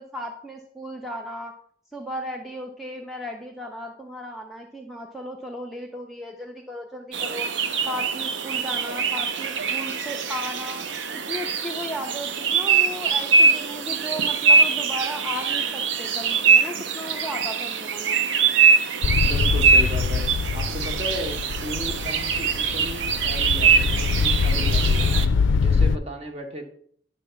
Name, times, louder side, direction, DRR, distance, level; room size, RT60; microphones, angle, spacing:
voice 1, 0.0-1.5 1.9-7.5 7.9-10.8 11.1-18.2, equal, ahead, 1 dB, 0.6 m, -35 dB
sound 1, 7.1-25.2, right 5 dB, 90° right, 0.6 m, -23 dB
sound 2, 19.0-26.0, left 5 dB, 85° left, 0.3 m, -24 dB
voice 2, 19.1-25.3 25.6-26.7, equal, 30° right, 3 dB, 1.2 m, -35 dB
10.0 x 3.4 x 6.8 m, 0.62 s
head